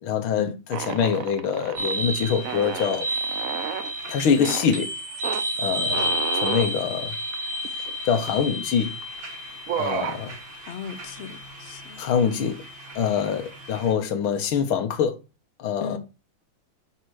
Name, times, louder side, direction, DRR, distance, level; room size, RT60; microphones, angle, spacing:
voice 1, 0.0-3.0 4.1-4.9 5.6-7.1 8.1-8.9 9.8-10.3 12.0-12.6 13.0-15.1 15.6-16.0, left 7 dB, 85° left, 1.8 m, -24 dB
sound 1, 0.7-2.0 2.4-3.9 4.4-4.7 5.2-5.4 5.9-6.7 7.3-7.4 7.6-8.4 9.0-9.2 9.5-10.2, right 9 dB, 70° right, 0.8 m, -31 dB
sound 2, 1.8-13.9, equal, 85° right, 2.6 m, -32 dB
voice 2, 10.7-12.0 15.8-16.0, left 7 dB, 65° left, 0.6 m, -36 dB
5.4 x 4.3 x 6.2 m
omnidirectional pair, 2.2 m